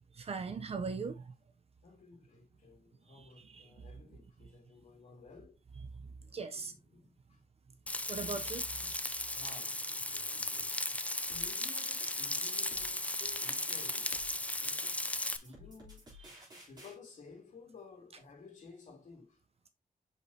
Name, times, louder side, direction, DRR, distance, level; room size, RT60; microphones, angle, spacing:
voice 1, 0.2-1.3 3.5-3.7 6.3-6.7 8.1-8.6 9.1-9.2, right 4 dB, 45° right, 0.7 m, -39 dB
voice 2, 1.8-5.6 6.5-7.4 8.3-9.0 9.3-10.8 11.2-14.9 15.3-16.1 16.7-19.4, left 4 dB, 60° left, 2.5 m, -55 dB
Frying (food), 7.9-15.4, left 2 dB, 10° left, 0.4 m, -36 dB
sound 1, 11.3-16.9, left 1 dB, 30° right, 3.5 m, -54 dB
6.1 x 5.7 x 2.8 m
wide cardioid pair, 165°, 15 cm